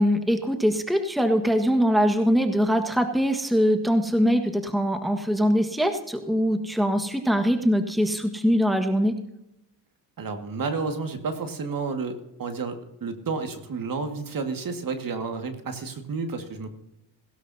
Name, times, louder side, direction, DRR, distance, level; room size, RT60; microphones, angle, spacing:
voice 1, 0.0-9.2, equal, ahead, 6 dB, 1.5 m, -22 dB
voice 2, 10.2-16.7, right 4 dB, 45° right, 6 dB, 2.0 m, -31 dB
17.0 x 16.5 x 2.8 m, 0.87 s
supercardioid pair, 75°, 46 cm